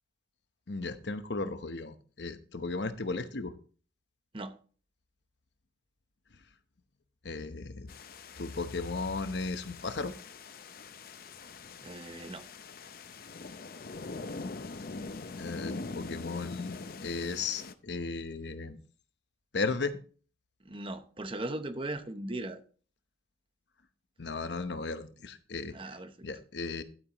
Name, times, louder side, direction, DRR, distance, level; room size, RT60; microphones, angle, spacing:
voice 1, 0.7-3.5 7.2-7.9 8.4-10.1 15.4-16.8 17.0-18.8 19.5-20.0 24.2-25.7 26.2-26.8, left 3 dB, 75° left, 0.9 m, -35 dB
sound 1, 7.9-17.7, left 3 dB, 55° left, 0.6 m, -43 dB
voice 2, 11.8-12.4 20.6-22.6 25.7-26.3, right 1 dB, 30° right, 0.9 m, -38 dB
12.0 x 8.5 x 3.0 m
head